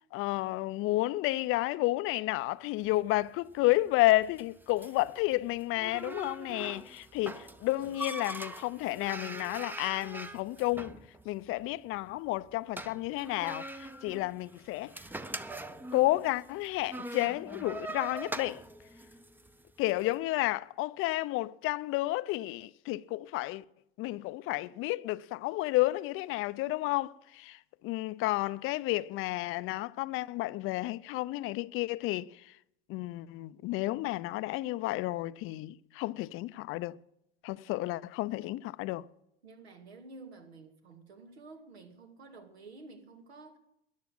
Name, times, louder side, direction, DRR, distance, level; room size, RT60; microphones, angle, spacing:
voice 1, 0.1-11.0 11.3-14.9 15.9-18.6 19.8-23.6 24.0-27.6 27.8-32.3 32.9-37.0 37.4-39.1, left 18 dB, 45° left, 0.5 m, -31 dB
sound 1, 2.8-20.0, right 1 dB, 5° right, 0.7 m, -43 dB
voice 2, 39.4-43.6, right 3 dB, 85° right, 2.3 m, -51 dB
13.5 x 10.5 x 7.6 m
hypercardioid pair, 90°, 31 cm